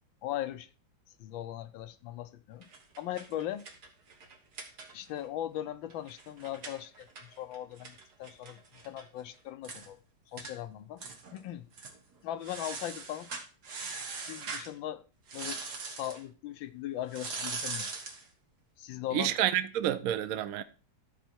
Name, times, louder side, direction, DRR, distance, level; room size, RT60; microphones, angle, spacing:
voice 1, 0.2-0.7 1.2-2.7 3.0-3.7 4.9-7.1 7.4-10.0 10.3-11.0 11.3-11.7 12.2-13.3 14.2-15.0 15.3-15.6 15.9-17.9 18.8-19.3, left 12 dB, 80° left, 1.4 m, -39 dB
sound 1, 2.6-5.3 5.6-5.7 5.9-9.0 9.3-9.4 9.6-9.9 10.4-10.6 11.0-11.4 11.7-12.0 12.4-14.7 15.3-16.2 17.1-18.2, right 4 dB, 55° right, 1.9 m, -41 dB
voice 2, 19.1-20.6, right 11 dB, 75° right, 0.8 m, -29 dB
13.5 x 4.6 x 4.4 m
omnidirectional pair, 2.1 m